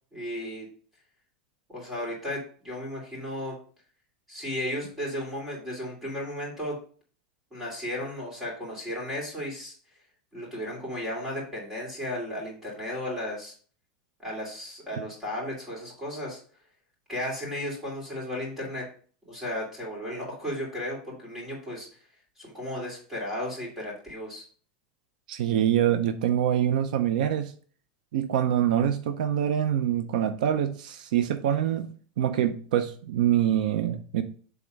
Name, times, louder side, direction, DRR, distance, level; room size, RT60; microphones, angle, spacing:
voice 1, 0.1-0.7 1.7-3.6 4.3-6.8 7.5-9.7 10.3-13.5 14.2-16.4 17.1-18.9 19.3-21.9 22.4-24.4, left 1 dB, 5° right, -3 dB, 2.9 m, -34 dB
voice 2, 25.3-27.5 28.1-31.9 32.2-34.2, right 10 dB, 80° right, 10 dB, 0.6 m, -25 dB
7.2 x 3.5 x 5.2 m, 0.43 s
supercardioid pair, 165°, 4 cm